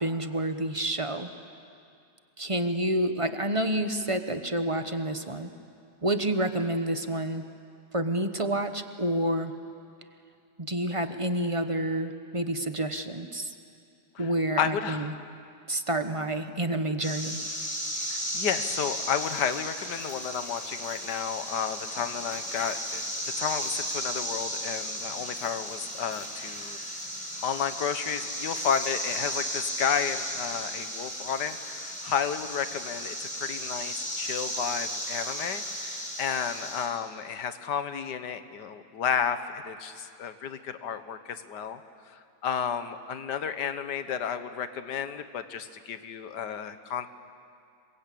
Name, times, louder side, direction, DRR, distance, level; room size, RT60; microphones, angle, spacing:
voice 1, 0.0-1.3 2.4-5.5 6.0-7.4 7.9-9.5 10.6-13.5 14.2-15.1 15.7-17.4, right 1 dB, 25° right, 8 dB, 0.8 m, -29 dB
voice 2, 14.6-15.2 18.1-23.0 23.4-26.8 27.4-41.8 42.1-47.1, left 7 dB, 90° left, 10 dB, 1.7 m, -32 dB
sound 1, 17.0-36.9, equal, 5° left, 4.1 m, -35 dB
27.0 x 23.0 x 8.5 m, 2.4 s
omnidirectional pair, 1.8 m